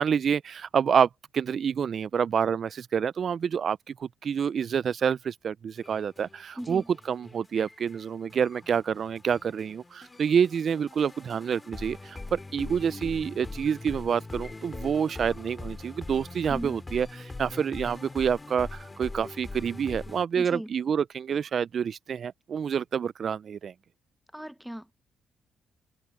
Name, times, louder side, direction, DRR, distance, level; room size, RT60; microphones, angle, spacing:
voice 1, 0.0-23.7, right 7 dB, 55° right, 0.3 m, -28 dB
sound 1, 5.8-20.3, left 2 dB, 20° left, 2.1 m, -42 dB
voice 2, 6.6-6.9 16.5-16.8 20.3-20.7 24.3-24.9, equal, 5° right, 0.7 m, -37 dB
open air
cardioid pair, 90°, 0 cm